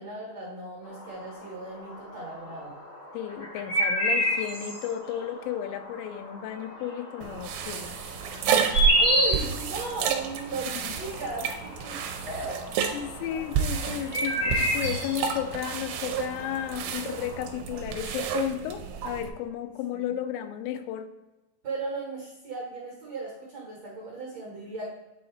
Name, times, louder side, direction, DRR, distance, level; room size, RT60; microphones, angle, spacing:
voice 1, 0.0-2.7 9.0-12.0 12.2-12.9 13.2-13.4 14.1-14.3 19.9-20.0 21.6-24.9, right 3 dB, 55° right, -4 dB, 1.9 m, -36 dB
sound 1, 0.8-17.5, equal, 50° left, 0.9 m, -31 dB
voice 2, 3.1-7.9 10.7-10.9 12.9-21.1, left 10 dB, 85° left, 8 dB, 2.8 m, -33 dB
sound 2, 7.2-19.3, right 7 dB, 85° right, 2.7 m, -31 dB
8.7 x 3.9 x 3.9 m, 1.0 s
omnidirectional pair, 5.1 m